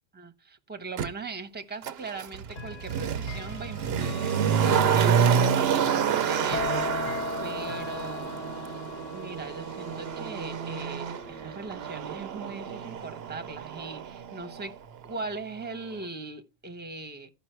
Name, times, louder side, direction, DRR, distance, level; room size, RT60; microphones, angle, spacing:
voice 1, 0.1-7.1 7.4-8.6 9.1-14.7 15.0-17.3, right 3 dB, 10° right, 0.8 m, -40 dB
Motor vehicle (road), 1.0-1.1 1.8-14.7 15.0-15.1, right 8 dB, 60° right, 0.8 m, -28 dB
Chime / Clock, 2.5-13.3, left 6 dB, 70° left, 1.1 m, -42 dB
sound 1, 6.5-14.1 14.4-14.9, left 7 dB, 50° left, 0.6 m, -38 dB
13.0 x 5.4 x 4.4 m
omnidirectional pair, 1.4 m